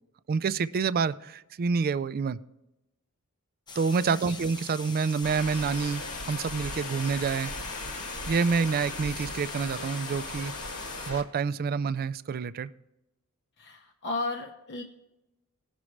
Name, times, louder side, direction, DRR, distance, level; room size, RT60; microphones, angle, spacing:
voice 1, 0.3-2.4 3.8-6.0 6.3-7.5 8.3-10.5 11.1-12.7, right 5 dB, 45° right, 14 dB, 0.3 m, -27 dB
sound 1, 3.7-11.1, left 4 dB, 20° left, 0.5 m, -43 dB
sound 2, 5.2-11.2, left 2 dB, 70° left, 1.6 m, -38 dB
voice 2, 13.6-14.8, left 2 dB, 50° left, 2 dB, 0.8 m, -34 dB
18.0 x 6.1 x 3.2 m, 0.93 s
head